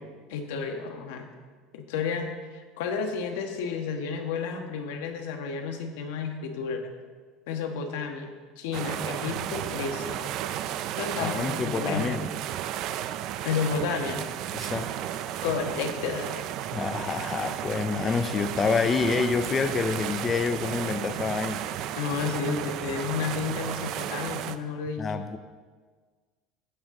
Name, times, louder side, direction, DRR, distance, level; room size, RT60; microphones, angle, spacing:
voice 1, 0.3-1.2 1.7-6.9 7.5-10.3 11.0-12.2 13.4-14.2 15.4-16.4 22.0-25.1, left 5 dB, 85° left, 4 dB, 1.3 m, -31 dB
sound 1, 8.7-24.6, right 11 dB, 55° right, 0.5 m, -33 dB
voice 2, 11.2-12.3 14.5-14.9 16.7-21.7 25.0-25.4, left 5 dB, 25° left, 9 dB, 0.5 m, -27 dB
15.0 x 7.3 x 3.8 m, 1.5 s
cardioid pair, 140°, 0 cm